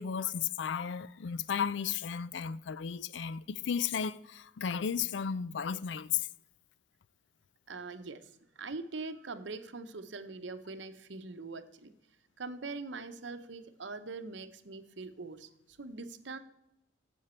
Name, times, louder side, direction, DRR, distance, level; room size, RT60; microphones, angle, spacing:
voice 1, 0.0-6.3, left 7 dB, 70° left, 0.4 m, -34 dB
voice 2, 7.7-8.3 8.6-11.9 12.4-16.4, right 3 dB, 70° right, 0.8 m, -42 dB
14.5 x 7.9 x 4.4 m
head